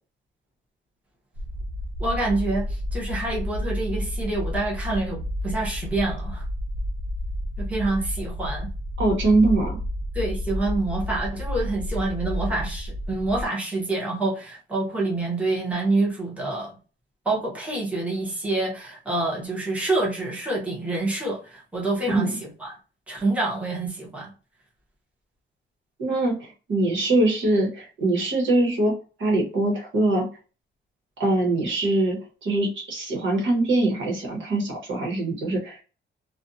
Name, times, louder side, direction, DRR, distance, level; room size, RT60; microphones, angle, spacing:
sound 1, 1.3-13.5, equal, 85° right, 0.6 m, -30 dB
voice 1, 2.0-6.4 7.6-8.7 10.1-16.7 17.2-22.8 23.1-24.3, right 2 dB, 5° right, -4 dB, 0.8 m, -27 dB
voice 2, 9.0-9.8 22.1-22.4 26.0-28.9 29.2-30.2 31.2-35.8, right 2 dB, 70° right, -1 dB, 1.1 m, -23 dB
2.5 x 2.1 x 2.6 m, 0.34 s
wide cardioid pair, 165°, 20 cm